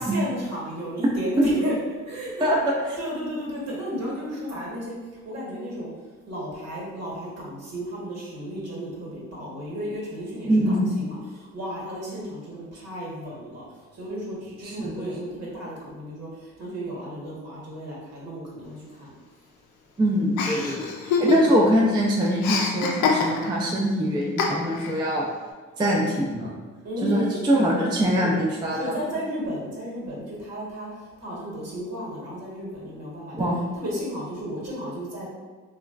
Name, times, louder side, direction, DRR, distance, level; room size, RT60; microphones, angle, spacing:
voice 1, 0.0-1.7 2.1-2.5 3.0-4.9 5.2-5.9 6.3-13.6 13.9-19.1 21.2-21.5 26.8-27.4 28.2-28.3 28.7-30.9 31.2-33.5 33.8-35.3, equal, 60° right, -5 dB, 1.1 m, -33 dB
voice 2, 10.5-10.9 14.6-14.9 20.0-25.3 25.8-26.6 27.0-29.0 33.3-33.6, equal, 15° right, -3 dB, 0.3 m, -23 dB
Chuckle chortle, 20.4-21.7 22.0-23.7 24.4-25.0, left 5 dB, 90° left, 0.5 m, -25 dB
2.9 x 2.2 x 2.3 m, 1.3 s
cardioid pair, 90°, 30 cm